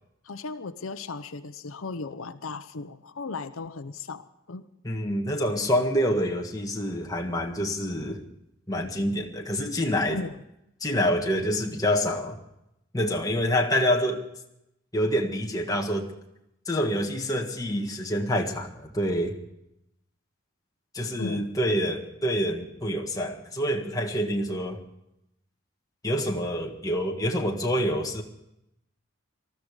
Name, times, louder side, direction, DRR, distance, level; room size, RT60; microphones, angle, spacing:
voice 1, 0.2-4.7 10.1-10.4 21.2-21.5, left 3 dB, 80° left, 11 dB, 0.8 m, -36 dB
voice 2, 4.8-8.2 8.7-10.2 10.8-12.4 12.9-14.2 14.9-16.1 16.7-19.3 20.9-24.8 26.0-28.2, equal, 15° left, 1 dB, 1.7 m, -27 dB
19.5 x 14.0 x 4.9 m, 0.83 s
head